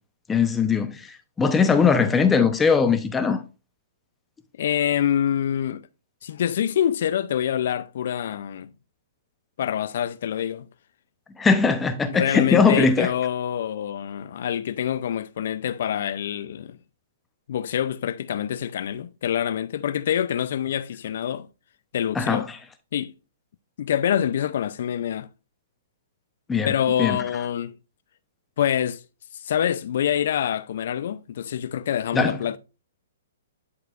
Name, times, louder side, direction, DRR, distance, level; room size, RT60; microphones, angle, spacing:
voice 1, 0.3-3.4 11.4-13.1 22.1-22.6 26.5-26.7 27.0-27.2 32.1-32.4, left 5 dB, 10° left, 0.7 m, -20 dB
voice 2, 4.6-5.9 6.2-8.7 9.6-10.7 12.1-16.8 17.5-21.5 21.9-22.5 22.9-23.1 23.8-25.3 26.6-27.8 28.6-29.0 29.3-32.6, left 9 dB, 60° left, 0.4 m, -26 dB
11.0 x 4.7 x 2.4 m
hypercardioid pair, 130°, 0 cm